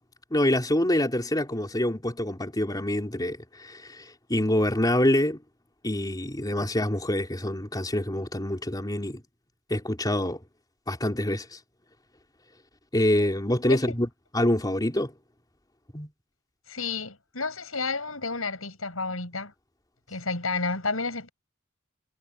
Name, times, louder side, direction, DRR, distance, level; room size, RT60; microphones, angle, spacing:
voice 1, 0.3-5.4 5.8-9.2 9.7-10.4 10.9-11.6 12.9-15.1 15.9-16.1, left 1 dB, 20° left, 3.8 m, -26 dB
voice 2, 16.7-19.5 20.1-21.3, left 3 dB, 85° left, 7.5 m, -31 dB
head